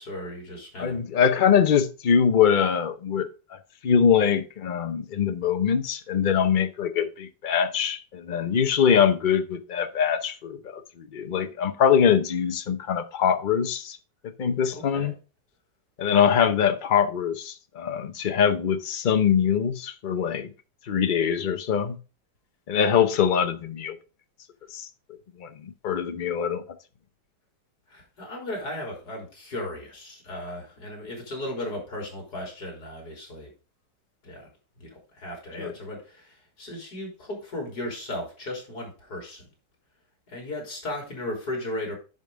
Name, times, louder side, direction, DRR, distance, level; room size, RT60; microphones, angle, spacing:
voice 1, 0.0-1.0 14.7-15.1 27.9-33.5 34.2-34.5 34.8-39.5 40.3-41.9, left 1 dB, 65° left, 4.0 m, -36 dB
voice 2, 0.8-3.3 3.5-14.0 14.4-15.1 16.0-20.5 20.9-22.0 22.7-23.9 24.7-24.9 25.4-26.6 35.6-35.7, left 7 dB, 50° left, 0.6 m, -23 dB
10.5 x 5.4 x 3.6 m
omnidirectional pair, 1.8 m